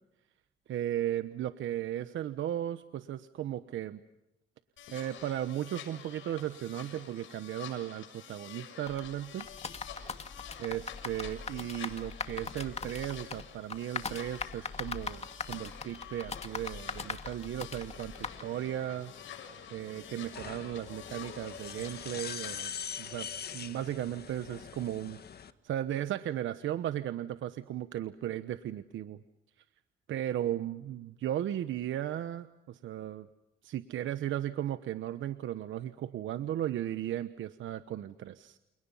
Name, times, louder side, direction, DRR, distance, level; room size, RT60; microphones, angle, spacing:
voice 1, 0.7-4.0 4.9-9.5 10.6-19.1 19.7-22.7 23.0-23.3 23.5-25.2 25.6-29.2 30.1-33.3 33.6-38.6, right 12 dB, 75° right, 11 dB, 1.1 m, -36 dB
sound 1, 4.8-22.6, left 9 dB, 75° left, 6.8 m, -49 dB
sound 2, 8.9-18.4, left 4 dB, 30° left, 2.4 m, -41 dB
sound 3, 17.9-25.5, left 7 dB, 55° left, 1.8 m, -44 dB
29.5 x 29.0 x 5.6 m, 0.93 s
cardioid pair, 90°, 20 cm